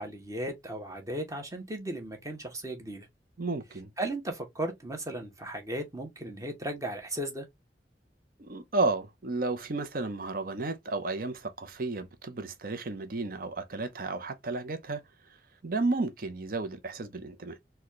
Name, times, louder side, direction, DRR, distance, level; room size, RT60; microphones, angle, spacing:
voice 1, 0.0-3.1 4.0-7.5, right 1 dB, 20° right, 0.9 m, -36 dB
voice 2, 3.4-3.9 8.4-15.0 15.6-17.6, right 3 dB, 55° right, 0.7 m, -32 dB
4.1 x 2.2 x 3.0 m
head